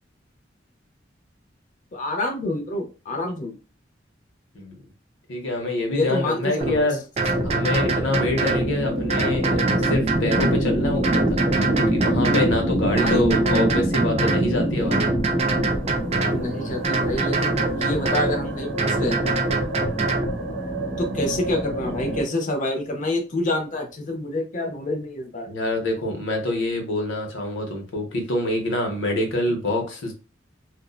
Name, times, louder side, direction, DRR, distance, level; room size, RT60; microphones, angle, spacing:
voice 1, 1.9-3.6 5.9-6.9 12.9-13.3 16.3-19.2 21.0-25.5, left 1 dB, 40° left, 3 dB, 0.6 m, -27 dB
voice 2, 5.3-7.0 7.4-15.1 25.5-30.1, left 2 dB, 85° left, 3 dB, 0.7 m, -26 dB
sound 1, 6.6-6.8 7.2-8.7 9.1-10.6 11.0-12.6 13.0-14.5 14.9-16.4 16.8-18.4 18.8-20.3, right 3 dB, 35° right, 0.3 m, -24 dB
sound 2, 7.2-22.2, right 1 dB, 70° right, 0.8 m, -26 dB
2.5 x 2.1 x 2.3 m, 0.33 s
head